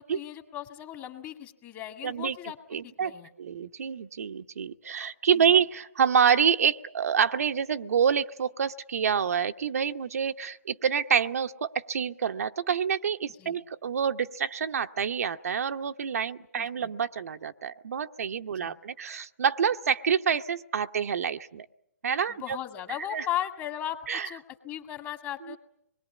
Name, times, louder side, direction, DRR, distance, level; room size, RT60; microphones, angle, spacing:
voice 1, 0.0-2.6 2.8-3.3 5.3-5.6 13.4-13.6 16.5-16.9 18.5-18.8 22.3-24.0 24.2-25.6, left 12 dB, 25° left, 5 dB, 2.1 m, -37 dB
voice 2, 2.0-2.4 2.7-3.1 3.4-21.7 22.0-22.6 23.1-23.3 24.1-24.3 25.5-25.6, right 7 dB, 65° right, 8 dB, 0.9 m, -27 dB
25.0 x 21.5 x 8.4 m, 0.78 s
hypercardioid pair, 140°, 9 cm